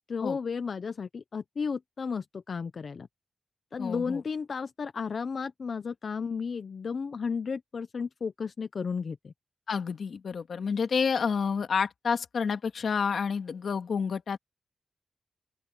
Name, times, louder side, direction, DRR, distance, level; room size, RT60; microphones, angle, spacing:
voice 1, 0.1-3.1 3.7-9.3, left 5 dB, 55° left, 0.6 m, -33 dB
voice 2, 3.8-4.2 9.7-14.4, left 6 dB, 75° left, 1.8 m, -29 dB
open air
wide cardioid pair, 145°, 0 cm